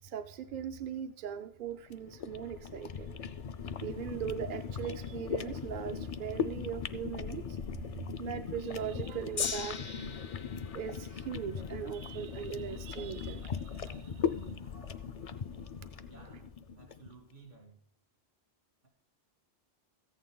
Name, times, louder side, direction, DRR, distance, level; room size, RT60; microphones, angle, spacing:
voice 1, 0.0-3.4 3.8-15.3 15.6-15.7, right 9 dB, 60° right, 8 dB, 0.7 m, -40 dB
sound 1, 1.9-17.1, left 7 dB, 50° left, 0.4 m, -39 dB
Gong, 9.4-15.7 16.5-16.6, left 6 dB, 90° left, 1.2 m, -43 dB
voice 2, 16.0-17.8, right 4 dB, 75° right, 1 dB, 2.8 m, -55 dB
14.0 x 8.9 x 3.8 m, 0.65 s
omnidirectional pair, 1.1 m